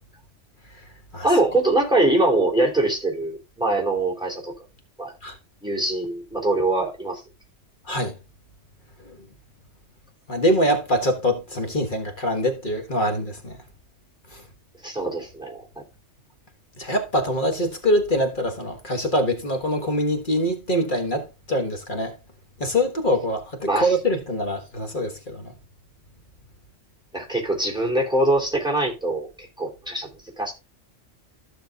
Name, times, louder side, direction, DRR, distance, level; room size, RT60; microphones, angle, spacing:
voice 1, 1.2-4.5 5.0-5.1 5.6-7.2 14.8-15.6 23.7-23.9 27.1-30.1 30.4-30.5, right 2 dB, 5° right, 3.3 m, -23 dB
voice 2, 10.3-13.6 14.3-14.4 16.8-22.2 22.6-25.5, equal, 45° left, 1.6 m, -24 dB
14.5 x 6.1 x 2.4 m
omnidirectional pair, 1.2 m